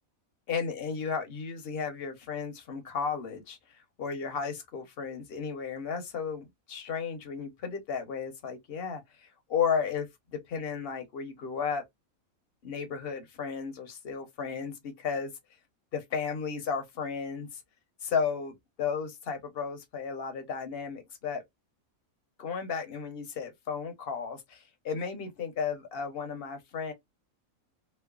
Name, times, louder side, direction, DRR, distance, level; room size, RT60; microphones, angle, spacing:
voice 1, 0.5-10.1 10.3-11.8 12.6-15.3 15.9-17.6 18.0-21.4 22.4-26.9, left 6 dB, 55° left, 0.7 m, -34 dB
3.0 x 2.1 x 2.2 m
omnidirectional pair, 1.5 m